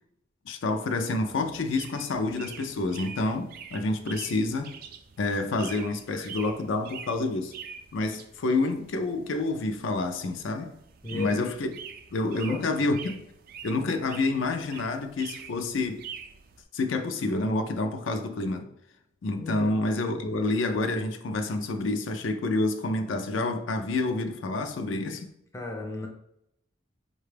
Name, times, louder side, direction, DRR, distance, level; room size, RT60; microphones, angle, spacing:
voice 1, 0.5-4.8 5.2-7.5 7.9-10.8 11.1-11.7 12.1-13.2 13.6-16.0 16.7-18.7 19.2-25.3, left 2 dB, 80° left, 0.4 m, -28 dB
sound 1, 1.2-16.6, right 7 dB, 50° right, 0.3 m, -46 dB
voice 2, 11.0-11.5 12.3-12.9 19.4-19.8 25.5-26.1, left 3 dB, 15° left, 0.5 m, -35 dB
4.6 x 2.3 x 3.2 m
head